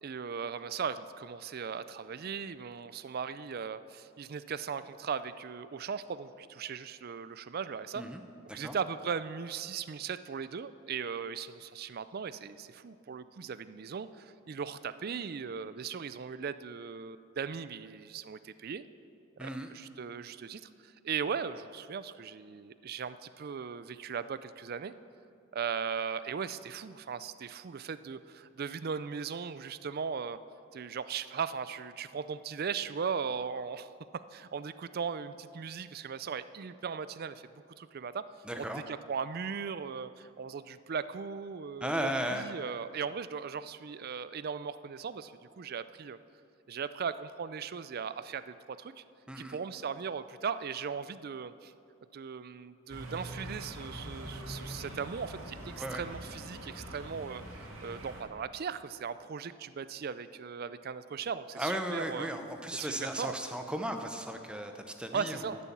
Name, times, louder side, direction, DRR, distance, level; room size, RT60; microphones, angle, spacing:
voice 1, 0.0-8.0 8.5-18.8 19.4-24.9 25.5-30.4 30.7-33.9 34.3-37.5 37.8-38.2 38.6-46.2 46.7-49.0 49.4-51.7 52.1-57.4 57.8-62.3 62.7-63.3 65.1-65.6, right 6 dB, 45° right, 14 dB, 0.4 m, -38 dB
voice 2, 19.4-19.7 38.4-38.8 41.8-42.5 49.3-49.6 55.7-56.0 61.6-65.6, right 1 dB, 5° right, 5 dB, 0.7 m, -36 dB
sound 1, 52.9-58.2, right 1 dB, 75° right, 2.2 m, -44 dB
14.0 x 6.9 x 7.2 m, 2.6 s
head